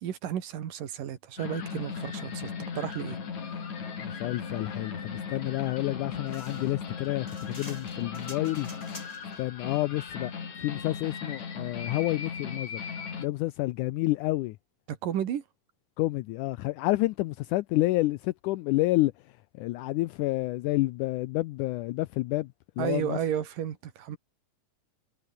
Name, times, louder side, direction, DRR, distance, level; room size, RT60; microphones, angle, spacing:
voice 1, 0.0-3.2 14.9-15.4 22.8-24.2, right 10 dB, 70° right, 3.5 m, -33 dB
sound 1, 1.4-13.3, left 6 dB, 55° left, 4.8 m, -37 dB
voice 2, 4.0-8.7 9.4-10.3 10.6-12.8 13.2-14.6 16.0-19.1 19.6-23.2, left 18 dB, 80° left, 1.9 m, -29 dB
sound 2, 6.3-9.4, left 1 dB, 10° left, 6.2 m, -48 dB
omnidirectional pair, 4.0 m